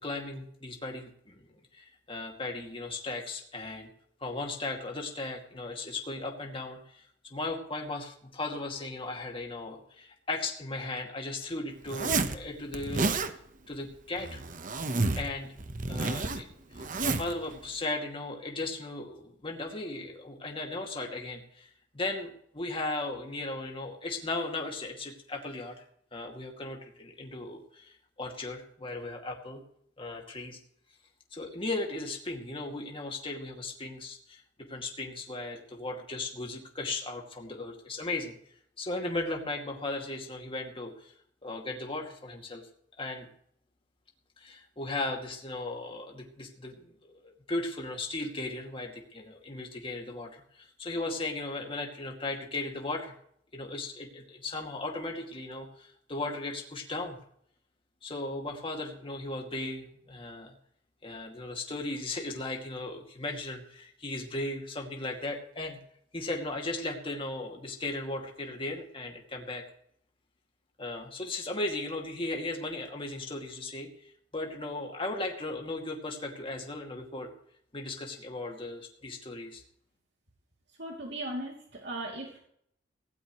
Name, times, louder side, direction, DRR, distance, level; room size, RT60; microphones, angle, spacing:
voice 1, 0.0-1.4 1.7-3.9 4.2-13.2 13.7-14.4 15.2-15.5 15.9-16.5 17.0-25.8 26.1-29.6 30.0-30.6 31.3-34.4 34.7-38.4 38.8-41.1 41.4-42.6 43.0-43.3 44.4-53.2 53.5-57.2 58.0-60.5 61.0-65.8 66.1-69.6 70.8-77.3 77.7-79.6, left 2 dB, 30° left, 1 dB, 2.4 m, -37 dB
Zipper (clothing), 11.9-12.4 12.7-13.3 14.2-15.3 15.6-17.3, right 3 dB, 45° right, 1.1 m, -30 dB
voice 2, 80.8-82.4, right 1 dB, 65° right, -1 dB, 2.9 m, -37 dB
18.0 x 17.0 x 3.2 m, 0.67 s
head